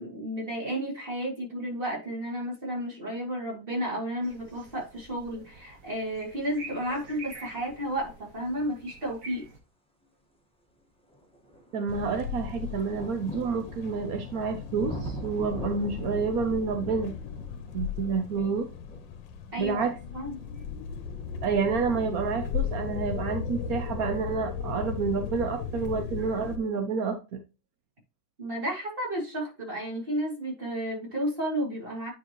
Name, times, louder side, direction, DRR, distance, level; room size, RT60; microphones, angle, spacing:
voice 1, 0.0-9.5 19.5-19.9 20.1-20.4 28.4-32.1, equal, 25° right, -2 dB, 2.8 m, -32 dB
sound 1, 4.2-9.6, right 3 dB, 45° right, 1.8 m, -47 dB
sound 2, 10.0-10.1 10.7-25.4 26.3-26.4, right 1 dB, 5° left, 1.1 m, -45 dB
voice 2, 11.7-17.2 17.7-18.7 19.6-19.9 21.4-27.4, right 5 dB, 65° right, 6 dB, 0.9 m, -29 dB
sound 3, 11.9-26.6, left 7 dB, 75° left, 1.5 m, -36 dB
9.5 x 5.3 x 3.0 m, 0.31 s
omnidirectional pair, 2.1 m